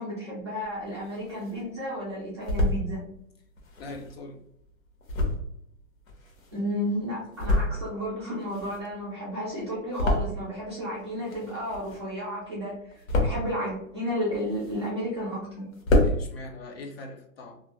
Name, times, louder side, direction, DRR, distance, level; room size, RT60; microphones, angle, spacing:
voice 1, 0.0-3.0 6.5-15.7, equal, 20° right, -8 dB, 0.4 m, -32 dB
sound 1, 0.6-1.6 2.1-2.8 3.5-6.8 7.2-8.0 8.3-10.7 11.0-12.2 12.6-13.6 14.1-15.1 15.4-15.5 15.7-16.2, left 1 dB, 70° left, 1.0 m, -28 dB
voice 2, 3.8-4.4 16.0-17.6, left 2 dB, 50° left, 3 dB, 0.5 m, -41 dB
2.4 x 2.1 x 2.8 m, 0.72 s
hypercardioid pair, 170°, 41 cm